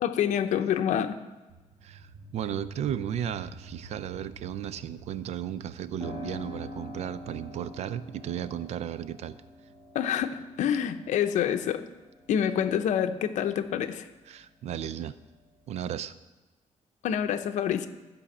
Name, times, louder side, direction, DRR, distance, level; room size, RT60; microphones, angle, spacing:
voice 1, 0.0-1.2 9.9-11.8 12.3-14.1 17.0-17.9, left 9 dB, 75° left, 8 dB, 0.8 m, -27 dB
sound 1, 1.5-12.6, right 3 dB, 35° right, 1.8 m, -50 dB
voice 2, 1.8-9.4 14.3-15.1 15.7-16.2, right 9 dB, 60° right, 15 dB, 0.5 m, -34 dB
Piano, 6.0-14.4 14.8-15.9, left 1 dB, 30° left, 2.3 m, -46 dB
14.0 x 5.2 x 7.2 m, 1.2 s
cardioid pair, 155°, 13 cm